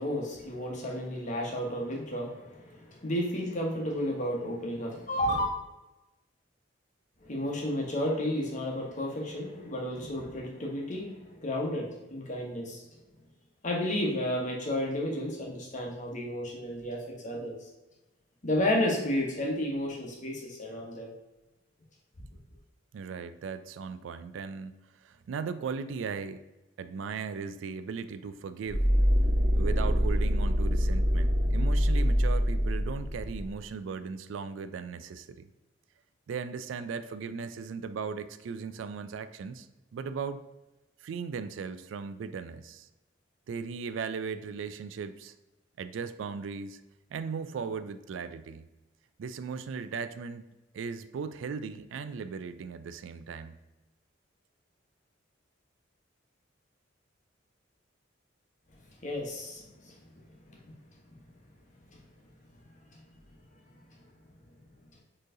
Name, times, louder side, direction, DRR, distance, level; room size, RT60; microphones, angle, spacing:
voice 1, 0.0-5.5 7.2-12.8 13.6-17.6 18.4-21.1 59.0-59.9, left 1 dB, 40° left, 0 dB, 1.1 m, -32 dB
voice 2, 22.9-26.4 26.8-28.9 29.5-35.5 36.3-39.7 39.9-40.4 41.0-42.9 43.5-45.3 45.8-46.8 47.1-48.6 49.2-50.4 50.7-53.5, right 5 dB, 80° right, 11 dB, 0.3 m, -37 dB
sound 1, 28.7-33.6, equal, 45° right, 0.9 m, -25 dB
4.5 x 3.2 x 3.7 m, 1.0 s
head